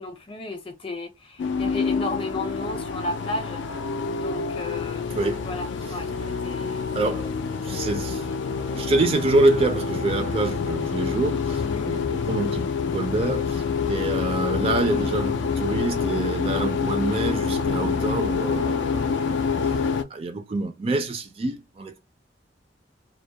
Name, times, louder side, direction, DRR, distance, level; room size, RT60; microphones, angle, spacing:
voice 1, 0.0-3.6 4.1-6.1 6.4-7.3 11.6-12.0, left 2 dB, 30° left, 0.6 m, -34 dB
sound 1, 1.4-20.0, left 5 dB, 75° left, 0.3 m, -27 dB
voice 2, 5.1-5.5 5.8-6.0 7.0-8.3 8.7-12.6 12.9-19.1 19.5-19.7 20.1-22.0, right 2 dB, 30° right, 0.4 m, -26 dB
2.2 x 2.0 x 2.7 m
head